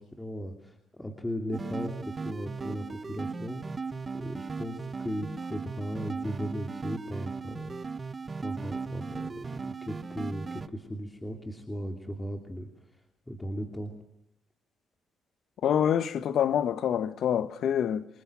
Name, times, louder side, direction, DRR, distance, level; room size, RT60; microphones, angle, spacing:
voice 1, 0.0-8.1 8.4-12.7 13.3-13.9, equal, 10° left, 2.9 m, -37 dB
sound 1, 1.5-10.7, right 4 dB, 30° right, 1.0 m, -37 dB
voice 2, 15.6-18.1, left 9 dB, 70° left, 1.3 m, -26 dB
27.0 x 20.0 x 8.9 m
cardioid pair, 90°, 0 cm